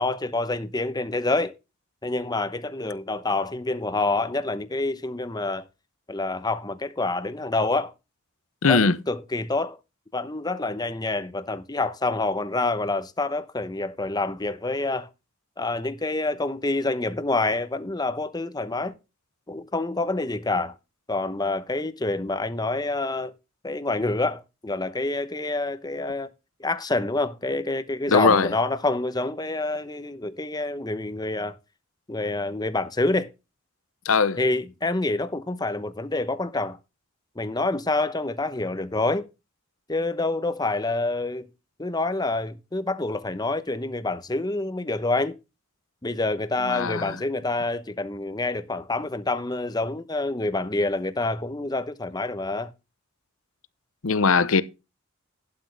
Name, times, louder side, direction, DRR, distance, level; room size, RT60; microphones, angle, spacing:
voice 1, 0.0-1.5 2.0-5.6 6.1-7.9 8.7-9.8 10.1-15.1 15.6-18.9 19.5-20.7 21.1-23.3 23.6-26.3 26.6-31.6 32.1-33.3 34.4-36.8 37.4-39.2 39.9-41.5 41.8-45.4 46.0-52.7, left 2 dB, 20° left, 0.9 m, -27 dB
voice 2, 8.6-9.0 28.1-28.5 34.0-34.4 46.6-47.2 54.0-54.6, left 4 dB, 75° left, 0.8 m, -20 dB
12.0 x 8.7 x 3.4 m
head